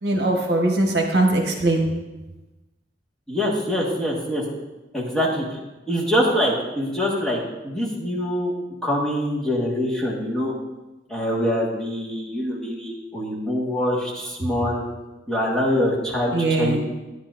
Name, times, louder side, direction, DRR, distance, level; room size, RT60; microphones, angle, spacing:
voice 1, 0.0-1.9 16.3-16.8, right 2 dB, 65° right, 2 dB, 1.1 m, -21 dB
voice 2, 3.3-4.4 4.9-5.4 5.9-8.5 8.8-10.5 11.1-14.8 15.3-16.8, equal, 5° left, -5 dB, 1.5 m, -24 dB
10.0 x 9.7 x 2.5 m, 1.1 s
head